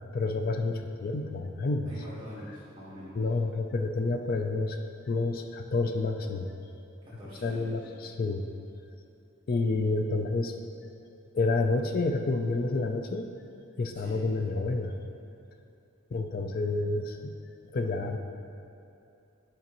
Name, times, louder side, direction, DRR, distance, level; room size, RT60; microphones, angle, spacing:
voice 1, 0.1-1.9 3.2-4.8 5.1-6.5 7.4-8.5 9.5-10.6 11.3-13.3 13.8-15.0 16.1-17.3 17.7-18.2, left 3 dB, 45° left, 5 dB, 0.4 m, -29 dB
voice 2, 1.8-3.2 7.0-7.9 13.9-14.3, equal, 25° right, -10 dB, 1.2 m, -44 dB
9.4 x 5.0 x 2.9 m, 2.7 s
head